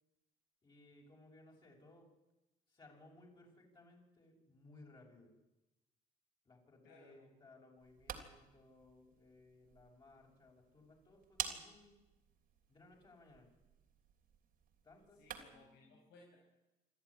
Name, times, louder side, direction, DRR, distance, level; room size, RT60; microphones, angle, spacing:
voice 1, 0.6-2.1 2.7-5.3 6.4-12.0 12.7-13.5 14.8-16.1, left 2 dB, 30° left, -1 dB, 6.5 m, -62 dB
voice 2, 6.8-7.3 15.1-16.4, left 3 dB, 90° left, -2 dB, 5.6 m, -63 dB
sound 1, 7.8-15.7, right 8 dB, 60° right, 3.2 m, -50 dB
25.5 x 13.5 x 10.0 m, 1.0 s
cardioid pair, 110°, 17 cm